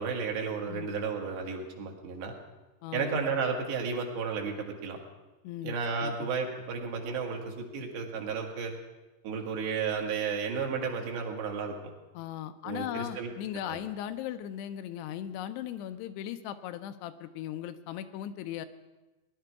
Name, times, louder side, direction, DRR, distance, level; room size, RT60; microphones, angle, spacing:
voice 1, 0.0-2.3 2.9-5.0 5.6-8.7 9.2-11.8 12.6-13.3 13.7-13.8, right 5 dB, 75° right, 1 dB, 3.7 m, -33 dB
voice 2, 2.8-3.2 5.4-6.3 12.1-18.7, left 11 dB, 80° left, 10 dB, 2.7 m, -38 dB
19.0 x 11.5 x 4.7 m, 1.1 s
omnidirectional pair, 4.9 m